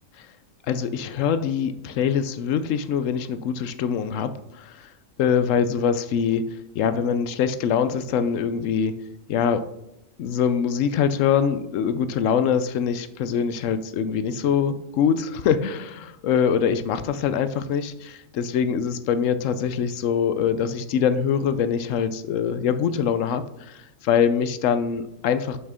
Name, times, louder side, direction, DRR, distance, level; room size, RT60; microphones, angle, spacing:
voice 1, 0.7-4.9 5.2-6.4 6.7-8.9 9.3-9.6 10.2-25.6, left 7 dB, 75° left, 11 dB, 0.9 m, -24 dB
6.6 x 5.5 x 3.5 m, 0.89 s
omnidirectional pair, 1.3 m